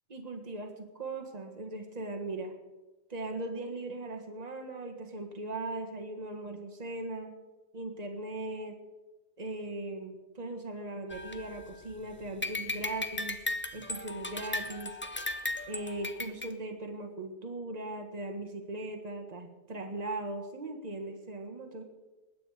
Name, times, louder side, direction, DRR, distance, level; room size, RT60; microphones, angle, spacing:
voice 1, 0.1-2.5 3.1-7.3 7.7-8.8 9.4-13.4 13.7-15.0 15.7-21.8, right 2 dB, 30° right, 4 dB, 1.6 m, -39 dB
sound 1, 11.1-12.0 12.4-16.5, left 2 dB, 15° left, 0.3 m, -36 dB
20.0 x 9.2 x 5.0 m, 1.1 s
omnidirectional pair, 1.5 m